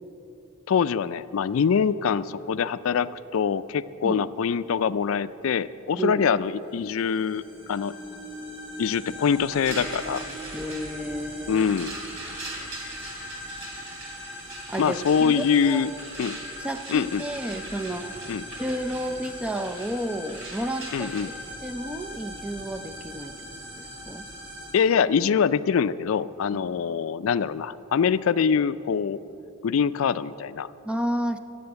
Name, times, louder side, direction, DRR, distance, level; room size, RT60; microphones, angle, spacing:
voice 1, 0.7-7.4 7.7-8.0 8.8-10.2 11.5-11.9 14.8-15.9 16.2-16.4 16.9-17.3 18.3-18.4 20.9-21.3 24.7-29.2 29.6-30.7, left 6 dB, 75° left, 15 dB, 0.4 m, -24 dB
sound 1, 6.6-24.7, equal, 25° right, 2.9 m, -40 dB
sound 2, 9.6-21.2, right 2 dB, 65° right, 2.9 m, -41 dB
voice 2, 10.5-11.6 14.7-15.8 16.6-18.1 18.6-21.1 21.6-23.3 23.8-24.2 30.8-31.4, right 1 dB, 5° right, 6 dB, 0.5 m, -31 dB
15.0 x 7.7 x 9.6 m, 3.0 s
head